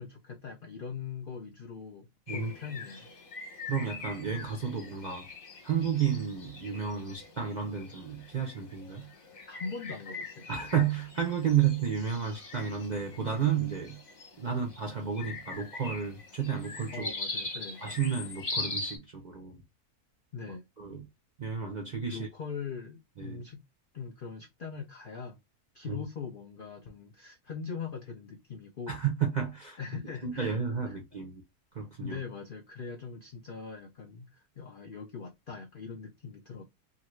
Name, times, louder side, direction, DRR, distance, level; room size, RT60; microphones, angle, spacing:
voice 1, 0.0-3.2 9.5-10.5 14.5-14.6 16.9-17.8 20.3-20.6 22.1-23.6 23.9-25.4 25.7-29.0 29.8-30.6 30.8-31.0 32.0-36.6, left 5 dB, 85° left, 0.4 m, -41 dB
sound 1, 2.3-19.0, left 3 dB, 35° left, 0.8 m, -42 dB
voice 2, 3.7-5.3 5.6-9.1 10.5-14.0 14.4-17.1 17.8-19.6 20.8-21.1 21.4-22.3 23.2-23.4 25.9-26.0 28.9-29.8 30.2-31.4 31.7-32.2, right 7 dB, 60° right, 0.4 m, -31 dB
2.8 x 2.6 x 3.0 m
omnidirectional pair, 1.7 m